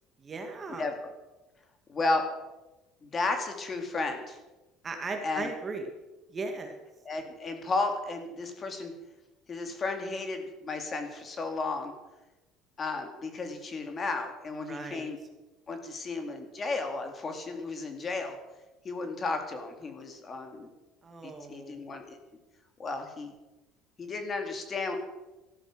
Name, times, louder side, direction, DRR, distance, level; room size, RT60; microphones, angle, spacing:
voice 1, 0.2-0.9 4.8-5.9 6.3-6.8 14.7-15.0 21.0-21.9, right 3 dB, 25° right, 5 dB, 1.9 m, -37 dB
voice 2, 0.8-1.1 1.9-2.2 3.0-4.4 5.2-5.5 7.0-8.9 9.5-11.9 12.8-15.2 15.7-18.4 18.8-20.7 21.2-22.2 22.8-23.3 24.0-25.0, left 3 dB, 25° left, 5 dB, 2.3 m, -33 dB
14.0 x 13.0 x 6.2 m, 1.1 s
cardioid pair, 150°, 0 cm